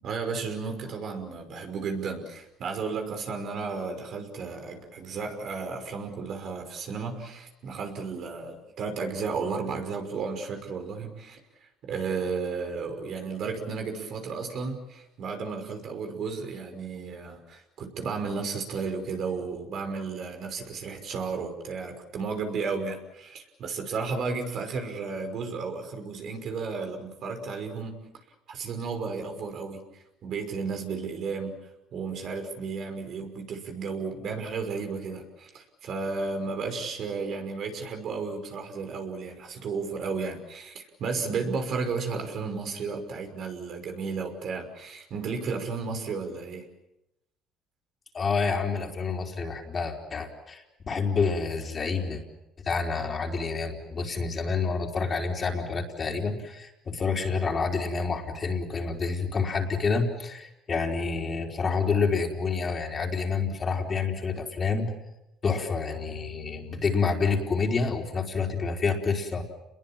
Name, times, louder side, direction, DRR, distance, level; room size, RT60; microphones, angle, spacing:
voice 1, 0.0-11.4 11.8-28.0 28.5-31.5 31.9-46.6, right 4 dB, 55° right, 4 dB, 5.7 m, -33 dB
voice 2, 48.1-52.2 52.6-64.9 65.4-69.4, left 4 dB, 35° left, 1 dB, 4.5 m, -28 dB
29.5 x 21.5 x 7.5 m, 0.87 s
cardioid pair, 100°, 0 cm